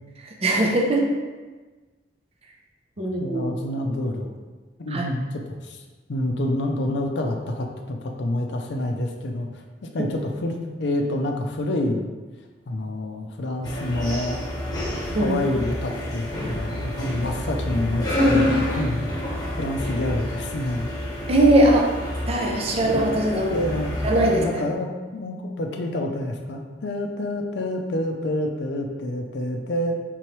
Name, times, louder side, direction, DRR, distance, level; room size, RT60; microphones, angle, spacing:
voice 1, 0.3-1.1 3.0-3.4 4.9-5.0 10.0-10.1 15.1-15.4 21.3-21.9 22.3-23.6 24.0-24.6, right 1 dB, 35° right, 0 dB, 0.5 m, -20 dB
voice 2, 3.0-4.3 4.8-5.8 6.1-12.1 12.7-14.4 15.1-19.1 19.6-20.9 23.4-29.9, left 1 dB, 70° left, 2 dB, 0.5 m, -28 dB
sound 1, 13.6-24.5, left 1 dB, 25° left, 1.2 m, -28 dB
4.5 x 3.7 x 3.1 m, 1.3 s
head